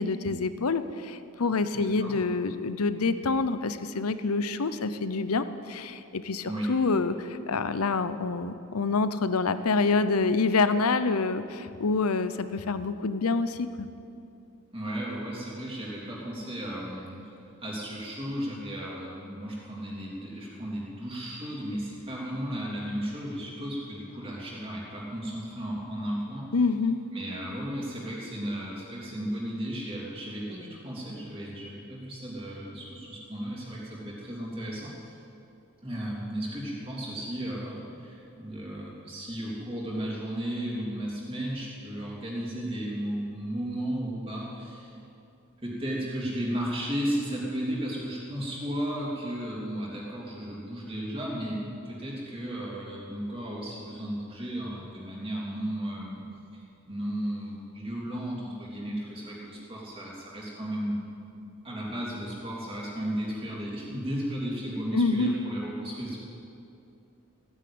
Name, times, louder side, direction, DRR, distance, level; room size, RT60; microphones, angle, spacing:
voice 1, 0.0-13.9 26.5-27.0 64.9-65.3, left 4 dB, 85° left, 12 dB, 0.7 m, -27 dB
voice 2, 1.8-2.1 6.4-6.7 14.7-26.5 27.1-35.1 35.8-45.0 45.6-56.2 56.5-56.6 56.9-61.0 61.3-61.4 61.6-66.2, equal, 25° right, -4 dB, 3.2 m, -34 dB
15.5 x 9.8 x 8.7 m, 2.6 s
head